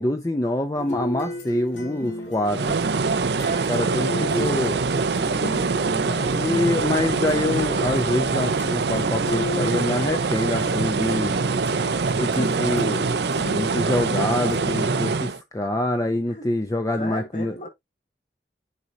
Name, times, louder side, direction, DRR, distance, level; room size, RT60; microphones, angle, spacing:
voice 1, 0.0-2.8 3.7-4.9 6.0-11.3 12.1-13.1 13.5-17.5, left 1 dB, 20° left, 0.5 m, -25 dB
sound 1, 0.8-15.2, left 1 dB, 85° left, 2.8 m, -35 dB
sound 2, 2.5-15.4, right 4 dB, 70° right, 0.6 m, -24 dB
voice 2, 3.8-4.4 11.6-12.0 16.3-16.5 17.0-17.7, left 2 dB, 45° left, 2.4 m, -36 dB
9.6 x 3.9 x 2.9 m
head